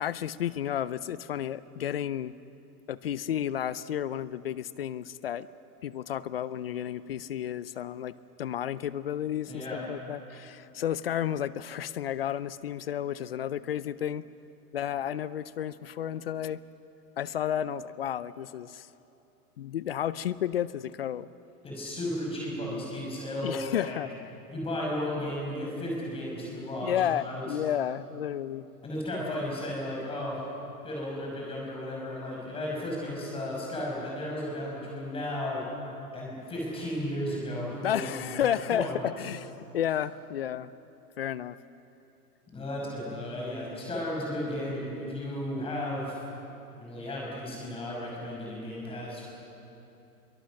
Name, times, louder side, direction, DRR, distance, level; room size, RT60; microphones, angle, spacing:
voice 1, 0.0-2.3 2.9-5.5 5.8-8.1 8.4-14.2 14.7-16.6 17.2-18.9 19.6-21.3 23.4-24.1 26.8-28.6 37.8-40.7 41.2-41.6, left 10 dB, 40° left, 17 dB, 0.4 m, -32 dB
voice 2, 9.5-9.8 21.6-24.0 24.5-27.4 28.8-30.4 30.8-35.6 36.1-38.1 38.4-39.0 42.5-46.2 46.7-49.3, left 1 dB, 10° left, -3 dB, 6.1 m, -34 dB
25.0 x 23.5 x 6.5 m, 2.9 s
hypercardioid pair, 155°, 46 cm